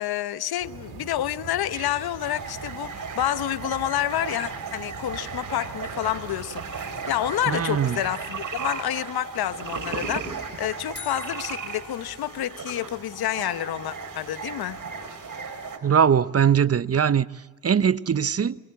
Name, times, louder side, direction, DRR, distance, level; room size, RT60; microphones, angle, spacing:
voice 1, 0.0-14.8, left 12 dB, 75° left, 1.0 m, -29 dB
sound 1, 0.6-9.0, right 7 dB, 80° right, 3.6 m, -43 dB
sound 2, 2.2-15.8, right 5 dB, 55° right, 4.8 m, -36 dB
voice 2, 7.5-8.0 15.8-17.3 17.6-18.6, right 7 dB, 40° right, 0.9 m, -21 dB
sound 3, 10.9-13.1, left 6 dB, 30° left, 3.9 m, -45 dB
27.5 x 21.0 x 8.4 m
supercardioid pair, 40°, 37 cm